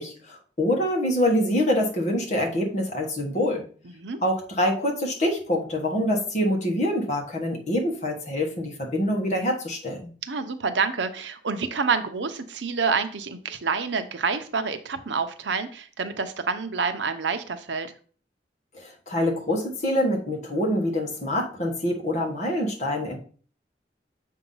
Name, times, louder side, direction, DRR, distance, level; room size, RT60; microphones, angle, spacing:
voice 1, 0.0-3.6 4.2-10.0 18.7-23.2, left 1 dB, 40° left, -1 dB, 1.4 m, -25 dB
voice 2, 10.2-17.9, right 5 dB, 85° right, 9 dB, 0.7 m, -28 dB
6.9 x 2.8 x 5.5 m, 0.43 s
head